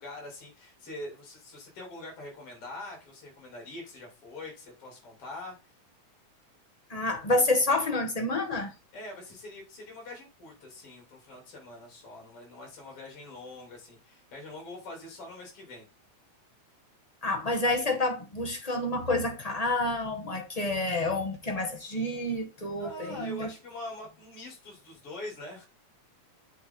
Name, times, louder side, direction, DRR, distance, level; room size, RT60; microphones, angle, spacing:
voice 1, 0.0-5.6 8.9-15.9 17.8-17.9 22.8-25.7, left 2 dB, 45° left, 4.1 m, -44 dB
voice 2, 6.9-8.7 17.2-23.5, left 2 dB, 20° left, 1.0 m, -28 dB
7.7 x 5.4 x 3.9 m
omnidirectional pair, 3.6 m